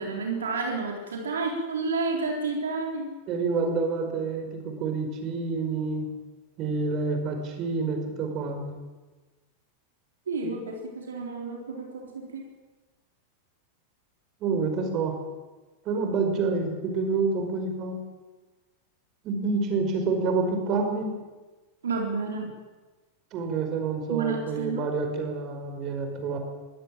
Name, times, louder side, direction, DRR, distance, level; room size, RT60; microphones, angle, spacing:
voice 1, 0.0-3.1 10.3-12.5 21.8-22.5 24.1-24.8, right 4 dB, 65° right, 1 dB, 3.9 m, -30 dB
voice 2, 3.3-6.1 6.6-8.8 10.4-10.5 14.4-15.1 15.9-18.0 19.2-21.1 23.3-26.4, right 4 dB, 35° right, 4 dB, 5.1 m, -28 dB
21.5 x 16.5 x 9.0 m, 1.2 s
figure-of-eight pair, 90°, 0 cm